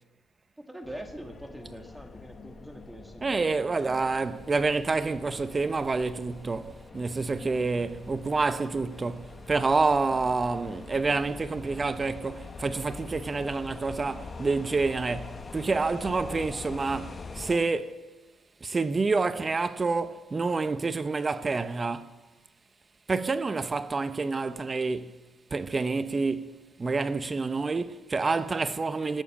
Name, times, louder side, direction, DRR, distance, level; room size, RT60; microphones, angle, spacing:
voice 1, 0.6-3.3, right 1 dB, 5° right, 1.7 m, -43 dB
sound 1, 0.8-17.6, left 4 dB, 35° left, 1.0 m, -44 dB
voice 2, 3.2-18.0 18.6-22.2 23.1-25.2 25.5-29.2, right 3 dB, 30° right, 0.7 m, -28 dB
18.0 x 7.2 x 7.3 m
cardioid pair, 80°, 0 cm